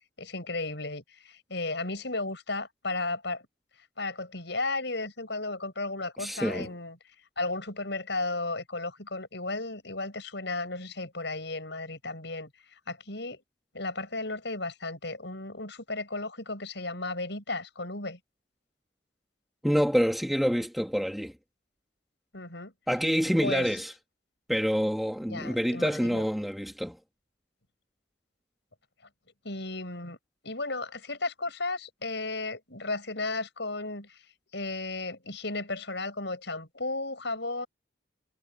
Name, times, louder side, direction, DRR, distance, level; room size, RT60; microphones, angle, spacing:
voice 1, 0.2-3.4 4.0-7.0 7.4-13.4 13.7-18.2 22.3-22.7 23.4-23.7 25.3-26.2 29.4-30.2 30.4-34.2 34.5-37.7, left 2 dB, 60° left, 7.4 m, -34 dB
voice 2, 6.2-6.7 19.6-21.3 22.9-23.9 24.5-27.0, equal, ahead, 1.6 m, -27 dB
head